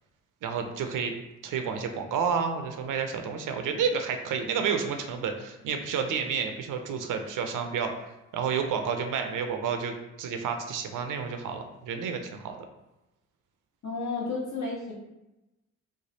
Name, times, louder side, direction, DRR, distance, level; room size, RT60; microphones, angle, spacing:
voice 1, 0.4-1.1 1.4-7.9 8.3-12.6, right 6 dB, 60° right, 6 dB, 0.5 m, -30 dB
voice 2, 13.8-14.9, left 3 dB, 50° left, -4 dB, 1.2 m, -32 dB
3.2 x 2.2 x 2.7 m, 0.97 s
hypercardioid pair, 50°, 36 cm